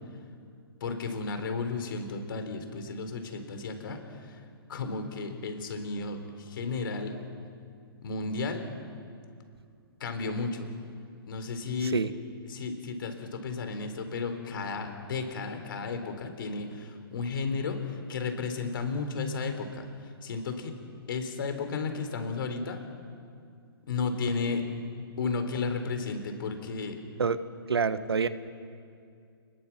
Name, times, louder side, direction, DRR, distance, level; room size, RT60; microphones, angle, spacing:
voice 1, 0.8-4.4 4.7-7.2 8.0-8.7 10.0-10.7 11.3-12.0 12.5-20.8 21.1-22.8 23.9-24.6 25.2-27.0, left 4 dB, 60° left, 6 dB, 4.0 m, -33 dB
voice 2, 27.7-28.3, right 5 dB, 80° right, 13 dB, 1.3 m, -26 dB
29.0 x 21.0 x 6.1 m, 2.4 s
hypercardioid pair, 130°, 13 cm